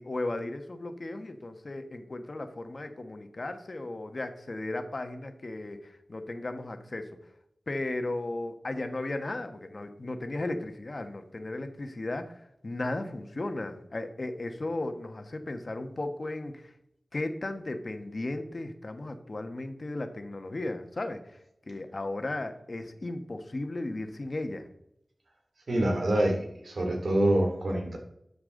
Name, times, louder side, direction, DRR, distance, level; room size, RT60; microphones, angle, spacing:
voice 1, 0.0-7.1 7.7-16.7 17.1-21.4 21.7-24.6, left 2 dB, 50° left, 7 dB, 1.3 m, -35 dB
voice 2, 25.7-28.0, right 1 dB, 80° right, 2 dB, 2.8 m, -26 dB
13.0 x 6.9 x 3.8 m, 0.78 s
wide cardioid pair, 80°, 0 cm